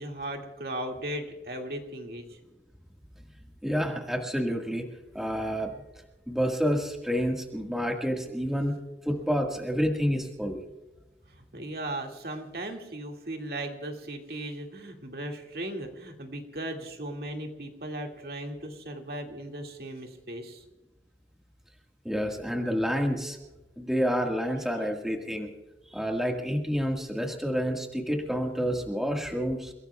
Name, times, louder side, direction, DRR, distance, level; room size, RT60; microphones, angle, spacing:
voice 1, 0.0-2.4 11.4-20.6, right 1 dB, 60° right, 2 dB, 2.2 m, -37 dB
voice 2, 3.6-5.7 6.3-8.7 9.1-10.6 22.1-23.4 23.8-25.5 25.9-29.7, equal, ahead, 1 dB, 1.7 m, -29 dB
30.0 x 18.0 x 2.4 m, 1.1 s
head